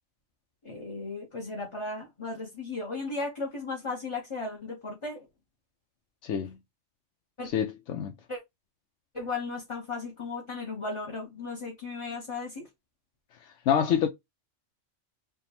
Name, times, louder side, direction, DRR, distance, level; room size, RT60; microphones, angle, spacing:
voice 1, 0.6-5.3 7.4-7.5 8.3-8.4 9.1-12.7, left 3 dB, 30° left, 0.7 m, -35 dB
voice 2, 6.2-6.6 7.5-8.1 13.7-14.1, left 8 dB, 70° left, 0.9 m, -26 dB
3.5 x 2.2 x 4.2 m
omnidirectional pair, 1.3 m